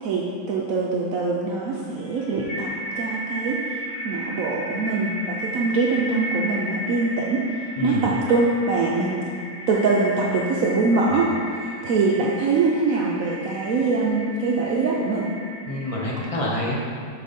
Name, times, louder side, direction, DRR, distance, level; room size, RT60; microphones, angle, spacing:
voice 1, 0.0-3.8 4.0-7.5 7.8-9.3 9.7-11.3 11.8-15.3, right 3 dB, 70° right, -3 dB, 0.8 m, -23 dB
sound 1, 2.0-16.3, equal, 90° left, 2.1 m, -34 dB
voice 2, 7.8-8.1 11.1-11.2 15.7-16.9, left 1 dB, 35° left, -4 dB, 0.5 m, -27 dB
6.3 x 4.6 x 5.2 m, 2.2 s
omnidirectional pair, 2.0 m